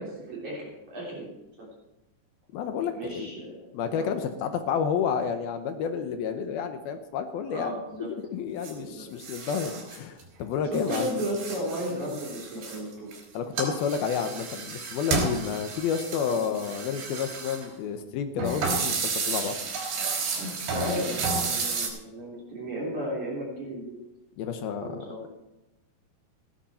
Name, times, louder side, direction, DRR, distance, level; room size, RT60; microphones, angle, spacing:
voice 1, 0.0-1.7 2.9-4.1 7.5-8.1 8.8-9.1 10.7-13.1 16.3-16.5 20.7-23.9 24.4-25.2, equal, 45° right, -4 dB, 4.5 m, -34 dB
voice 2, 2.5-3.3 3.7-7.7 8.0-11.2 13.3-19.0 19.3-19.5 24.4-24.9, left 7 dB, 75° left, 7 dB, 2.5 m, -30 dB
sound 1, 8.6-8.7 9.2-10.2 10.5-13.2 13.6-17.7 18.4-21.9, right 4 dB, 85° right, 5.5 m, -31 dB
16.0 x 11.5 x 4.3 m, 0.96 s
omnidirectional pair, 5.0 m